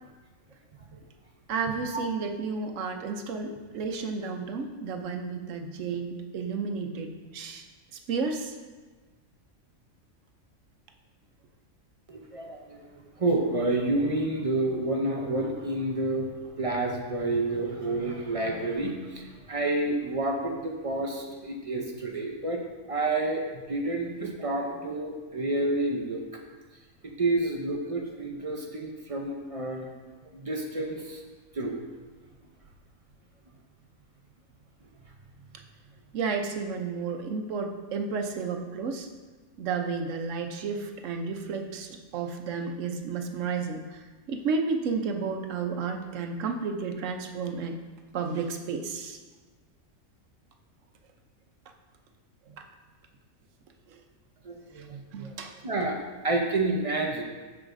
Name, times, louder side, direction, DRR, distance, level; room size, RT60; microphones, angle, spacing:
voice 1, 1.5-7.6 8.1-8.5 36.1-39.1 39.6-43.8 44.3-47.7 48.1-49.2 52.6-52.7 55.1-55.5, right 5 dB, 70° right, 4 dB, 1.0 m, -32 dB
voice 2, 12.1-12.8 13.2-16.3 16.6-22.6 22.9-26.2 27.2-29.9 30.3-31.2 31.5-31.8 54.4-55.3 55.6-56.0 56.2-57.2, right 2 dB, 40° right, 1 dB, 0.5 m, -29 dB
14.0 x 4.8 x 2.6 m, 1.3 s
omnidirectional pair, 1.4 m